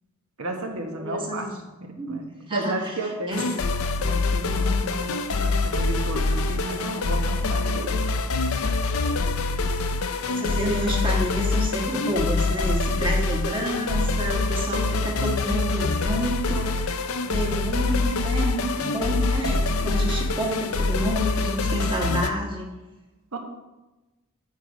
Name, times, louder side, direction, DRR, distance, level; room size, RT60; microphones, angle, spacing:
voice 1, 0.4-1.5 1.8-3.6 4.0-8.1 23.3-23.4, right 1 dB, 80° right, 2 dB, 1.3 m, -33 dB
voice 2, 1.0-1.6 2.0-2.2 2.5-2.8 3.3-3.4 10.2-22.7, right 1 dB, 25° right, 0 dB, 1.4 m, -29 dB
sound 1, 3.3-22.3, left 3 dB, 70° left, 0.5 m, -25 dB
9.0 x 4.7 x 5.2 m, 1.1 s
head